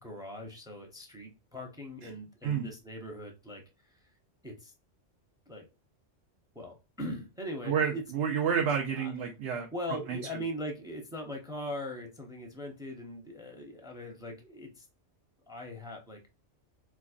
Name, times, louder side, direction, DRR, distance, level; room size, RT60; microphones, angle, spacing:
voice 1, 0.0-3.6 4.4-4.7 5.5-5.7 6.5-8.0 9.0-9.1 9.7-14.9 15.5-16.2, equal, 5° right, 3 dB, 0.6 m, -40 dB
voice 2, 7.6-9.7 10.1-10.4, right 7 dB, 65° right, 2 dB, 0.9 m, -30 dB
4.4 x 2.3 x 2.4 m, 0.27 s
omnidirectional pair, 1.2 m